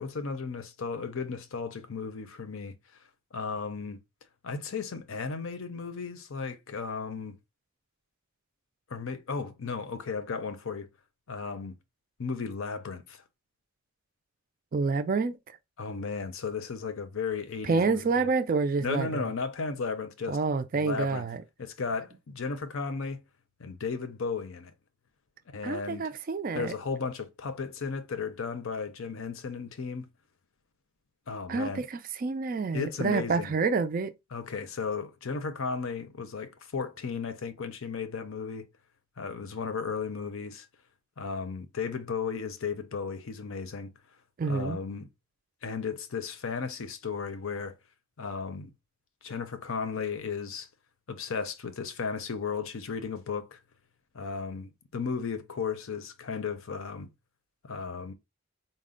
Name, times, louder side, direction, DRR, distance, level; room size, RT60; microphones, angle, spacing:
voice 1, 0.0-2.7 3.3-4.0 4.4-7.4 8.9-10.9 11.3-11.8 12.2-13.2 15.8-18.3 18.8-20.4 20.7-21.3 21.6-23.2 23.6-24.7 25.5-26.0 26.5-30.1 31.3-31.8 32.7-33.5 34.3-38.7 39.2-40.7 41.2-43.9 44.4-45.1 45.6-47.8 48.2-48.7 49.2-50.7 51.1-53.6 54.1-57.1 57.6-58.1, left 5 dB, 65° left, 0.6 m, -35 dB
voice 2, 14.7-15.4 17.6-19.3 20.3-21.4 25.6-26.7 31.5-34.1 44.4-44.8, right 4 dB, 40° right, 0.3 m, -28 dB
4.1 x 2.1 x 3.7 m
head